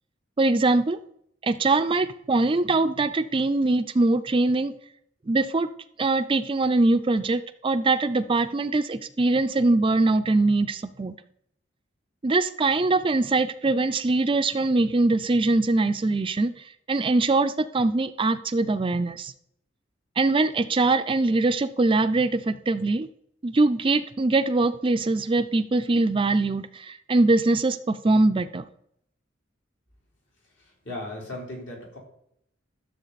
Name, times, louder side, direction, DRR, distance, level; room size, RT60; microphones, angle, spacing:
voice 1, 0.4-1.0 1.4-4.7 5.3-5.7 6.0-11.1 12.2-16.5 16.9-19.3 20.2-23.1 23.4-28.6, right 2 dB, 25° right, 10 dB, 0.4 m, -22 dB
voice 2, 30.8-32.0, left 1 dB, 70° left, -2 dB, 4.0 m, -36 dB
13.0 x 7.2 x 4.1 m, 0.72 s
head